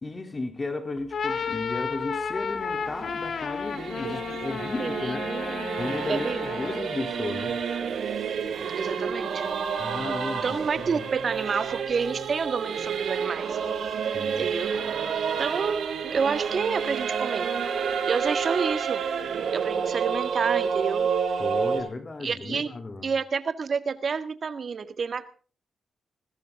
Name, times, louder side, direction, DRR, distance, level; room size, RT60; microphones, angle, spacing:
voice 1, 0.0-5.3 5.8-7.6 9.7-11.0 14.1-14.5 21.4-23.1, left 3 dB, 35° left, 2.8 m, -34 dB
sound 1, 1.0-7.0, left 5 dB, 65° left, 1.4 m, -32 dB
Singing / Musical instrument, 2.4-21.8, right 6 dB, 80° right, 2.9 m, -29 dB
voice 2, 4.8-5.8 6.1-6.4 8.7-9.5 10.4-13.6 14.4-14.7 15.4-17.5 18.1-19.0 19.5-21.1 22.2-22.7 23.0-25.3, right 5 dB, 60° right, 1.7 m, -29 dB
21.0 x 15.5 x 3.6 m
cardioid pair, 60°, 0 cm